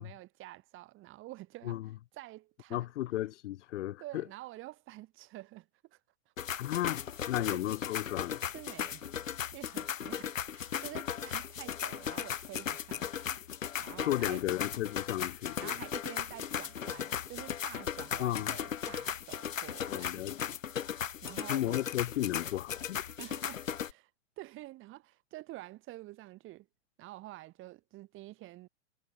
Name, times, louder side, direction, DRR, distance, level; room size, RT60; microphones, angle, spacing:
voice 1, 0.0-2.9 4.0-6.0 6.2-6.3 7.4-7.7 8.5-9.2 9.5-14.4 15.6-20.2 21.2-21.9 23.2-24.1 24.4-26.7 27.0-28.7, right 17 dB, 30° right, 6.7 m, -49 dB
voice 2, 2.7-4.0 6.6-8.4 14.0-15.7 18.2-18.5 19.9-20.3 21.5-23.0, left 14 dB, 70° left, 0.6 m, -34 dB
sound 1, 6.4-23.9, left 8 dB, 90° left, 1.3 m, -37 dB
hypercardioid pair, 130°, 38 cm